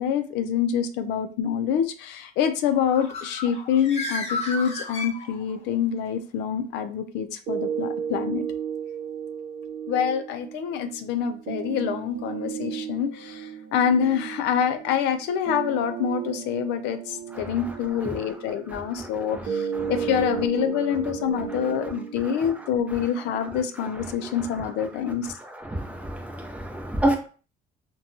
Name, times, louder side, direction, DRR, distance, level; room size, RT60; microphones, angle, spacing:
voice 1, 0.0-8.5 9.9-25.3, left 8 dB, 90° left, 0.4 m, -26 dB
Bird, 2.7-5.7, left 2 dB, 40° left, 0.7 m, -33 dB
sound 1, 7.5-23.5, right 7 dB, 55° right, 0.7 m, -34 dB
voice 2, 18.7-19.1 19.8-19.9 24.2-24.3 25.6-27.2, right 1 dB, 10° right, 0.6 m, -28 dB
2.8 x 2.2 x 2.6 m
cardioid pair, 110°, 17 cm